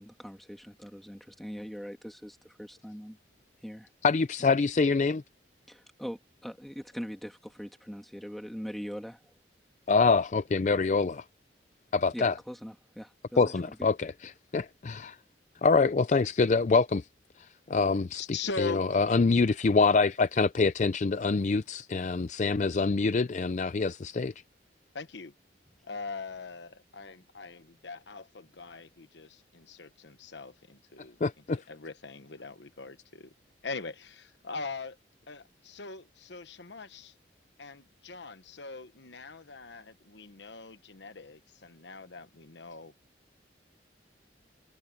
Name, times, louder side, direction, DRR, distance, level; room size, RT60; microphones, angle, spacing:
voice 1, 0.0-3.2 3.6-3.9 5.7-9.3 12.1-13.5, equal, ahead, 2.4 m, -42 dB
voice 2, 4.0-5.2 9.9-11.2 11.9-12.3 13.4-15.2 15.6-17.1 17.4-18.2 18.6-24.3 31.2-31.6, left 4 dB, 40° left, 0.4 m, -25 dB
voice 3, 18.2-18.8 24.9-25.3 25.8-31.2 31.5-33.3 33.6-35.0 35.3-37.1 37.6-42.9, left 4 dB, 75° left, 1.1 m, -41 dB
head